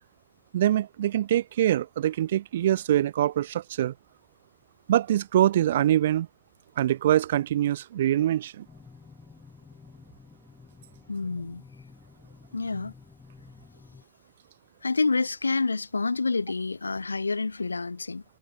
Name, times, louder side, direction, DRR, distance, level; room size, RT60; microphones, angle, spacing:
voice 1, 0.5-3.9 4.9-6.3 6.8-8.6, right 12 dB, 60° right, 0.9 m, -24 dB
sound 1, 8.7-14.0, left 5 dB, 15° left, 5.0 m, -51 dB
voice 2, 11.1-11.6 12.5-12.9 14.8-18.2, left 3 dB, 80° left, 0.7 m, -28 dB
figure-of-eight pair, 90°, 0 cm